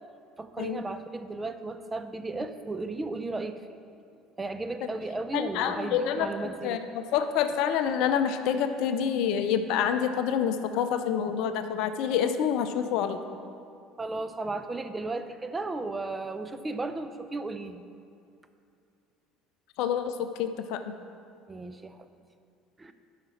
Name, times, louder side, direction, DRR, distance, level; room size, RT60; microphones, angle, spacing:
voice 1, 0.4-3.6 4.4-6.8 14.0-17.8 21.5-22.1 22.8-22.9, right 3 dB, 20° right, 9 dB, 0.6 m, -35 dB
voice 2, 5.3-6.3 6.6-13.4 19.8-20.9, left 8 dB, 65° left, 9 dB, 0.5 m, -27 dB
11.5 x 5.9 x 4.4 m, 2.5 s
hypercardioid pair, 65°, 0 cm